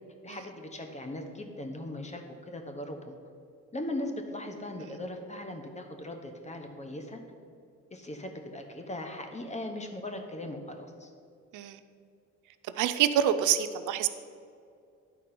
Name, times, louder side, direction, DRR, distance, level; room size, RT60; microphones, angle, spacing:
voice 1, 0.2-3.2 3.7-7.2 7.9-11.1, left 1 dB, 25° left, 4 dB, 1.1 m, -39 dB
voice 2, 12.8-14.1, right 10 dB, 80° right, 10 dB, 0.5 m, -26 dB
10.5 x 4.1 x 5.9 m, 2.4 s
cardioid pair, 90°, 30 cm